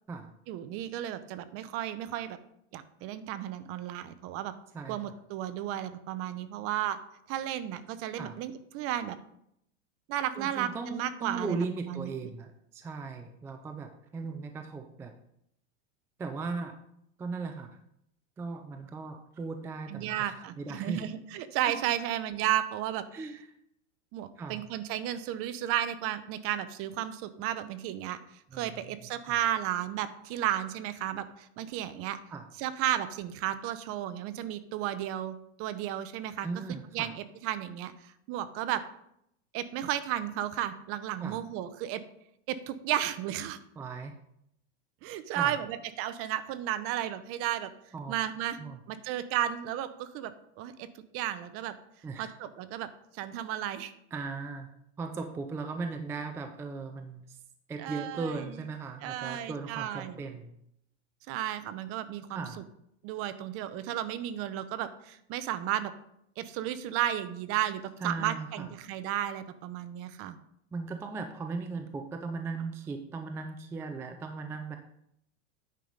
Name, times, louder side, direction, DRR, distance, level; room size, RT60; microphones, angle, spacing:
voice 1, 0.5-2.4 2.7-4.5 4.9-7.0 7.3-9.2 10.1-12.1 19.9-23.0 24.1-28.2 28.5-32.2 32.6-36.5 36.9-38.8 39.5-42.0 42.5-43.6 45.0-47.7 48.1-48.6 48.9-51.7 52.2-52.9 53.1-53.9 57.8-58.3 59.0-60.2 61.3-62.5 63.0-65.9 66.4-70.4, right 12 dB, 40° right, 13 dB, 0.7 m, -33 dB
voice 2, 10.4-15.1 16.2-16.7 17.2-17.8 18.4-21.1 23.1-23.5 24.4-24.6 28.5-29.4 32.3-32.4 36.4-37.1 41.2-41.4 43.8-44.2 45.3-45.6 47.9-48.1 48.6-48.8 52.0-52.4 54.1-57.4 57.7-60.6 62.3-62.6 68.0-68.7 70.7-74.8, right 4 dB, 10° right, 6 dB, 0.3 m, -38 dB
9.2 x 5.5 x 5.1 m, 0.75 s
supercardioid pair, 140°, 35 cm